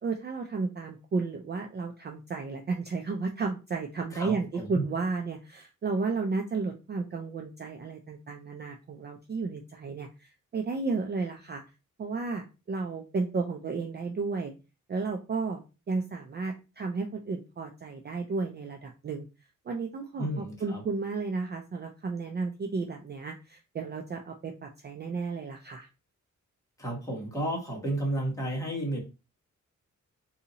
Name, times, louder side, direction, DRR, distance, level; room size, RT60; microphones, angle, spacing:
voice 1, 0.0-11.6 12.0-14.5 14.9-19.3 19.7-25.9, right 4 dB, 35° right, 3 dB, 0.4 m, -33 dB
voice 2, 4.1-4.7 20.2-20.8 26.8-29.0, right 1 dB, 10° left, -3 dB, 1.4 m, -32 dB
2.7 x 2.7 x 3.9 m, 0.30 s
wide cardioid pair, 155°, 30 cm